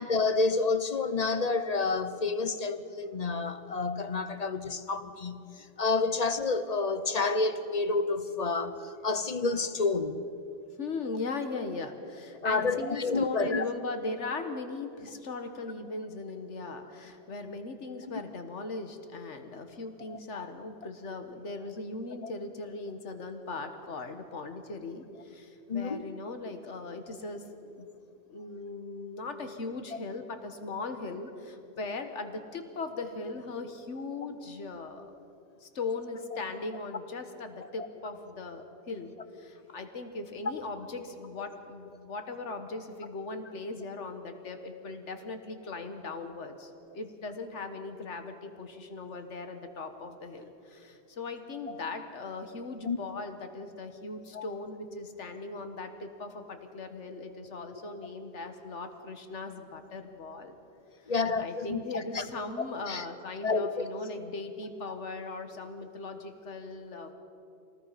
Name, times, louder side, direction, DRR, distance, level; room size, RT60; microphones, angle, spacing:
voice 1, 0.0-10.2 12.4-13.7 20.1-20.5 25.7-26.0 29.9-30.0 51.7-51.8 52.9-53.0 54.3-54.4 61.1-62.2 62.9-63.0 63.4-63.8, left 3 dB, 40° left, 10 dB, 0.9 m, -29 dB
voice 2, 10.8-27.4 27.8-27.9 28.3-35.1 35.6-60.6 61.0-61.1 61.4-67.1, left 3 dB, 90° left, 7 dB, 1.7 m, -39 dB
25.5 x 19.5 x 5.8 m, 2.7 s
omnidirectional pair, 1.2 m